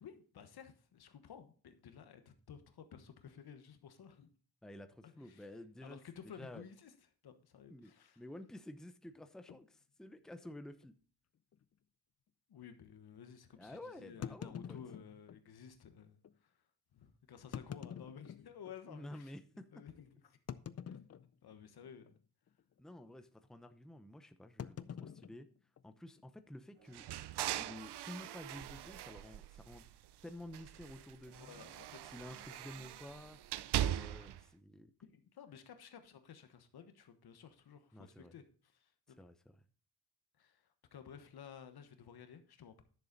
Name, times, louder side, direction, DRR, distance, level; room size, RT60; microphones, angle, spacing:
voice 1, 0.0-4.3 5.0-5.5 5.8-6.9 7.2-8.2 12.5-16.5 16.9-19.3 19.7-20.4 20.9-21.0 21.4-22.2 31.4-32.4 35.0-39.2 40.4-42.8, left 7 dB, 70° left, 8 dB, 1.3 m, -54 dB
voice 2, 4.6-6.0 6.4-6.7 7.7-10.9 13.6-14.8 18.9-19.8 22.8-25.5 25.8-27.1 27.6-29.8 30.2-31.7 32.0-33.4 33.8-34.9 37.9-38.3 39.2-39.6, left 1 dB, ahead, 9 dB, 0.7 m, -51 dB
sound 1, 9.5-9.7 10.4-10.5 10.8-10.9 11.5-11.6 14.2-15.4 16.2-16.3 17.4-18.8 19.3-19.4 20.5-21.6 21.9-22.2 22.5-22.8 24.6-26.2, left 8 dB, 40° left, 0.5 m, -47 dB
sound 2, 26.9-30.1 30.5-34.4, right 12 dB, 80° right, 0.6 m, -41 dB
10.5 x 6.8 x 4.0 m, 0.42 s
cardioid pair, 95°, 39 cm